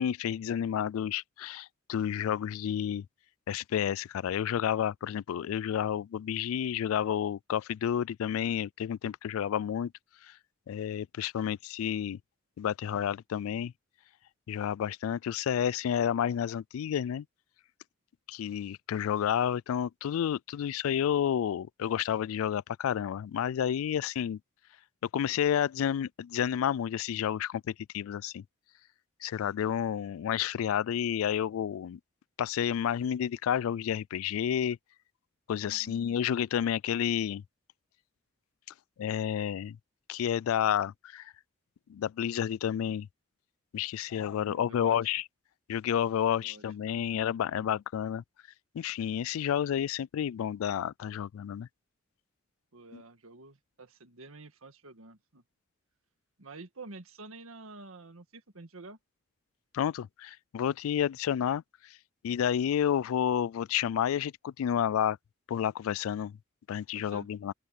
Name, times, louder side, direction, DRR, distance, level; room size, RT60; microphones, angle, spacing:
voice 1, 0.0-3.1 3.5-9.9 10.7-12.2 12.6-13.7 14.5-17.2 18.3-24.4 25.1-28.4 29.2-32.0 32.4-34.8 35.5-37.4 39.0-39.8 40.1-41.3 41.9-43.1 43.7-45.2 45.7-48.2 48.7-51.7 52.9-53.0 59.7-61.6 62.2-65.2 65.5-66.4 66.7-67.5, left 9 dB, 90° left, 0.3 m, -30 dB
voice 2, 35.6-36.0 44.3-45.1 46.3-46.6 46.9-47.6 52.7-55.4 56.4-59.0 66.9-67.3, right 3 dB, 90° right, 1.7 m, -49 dB
open air
head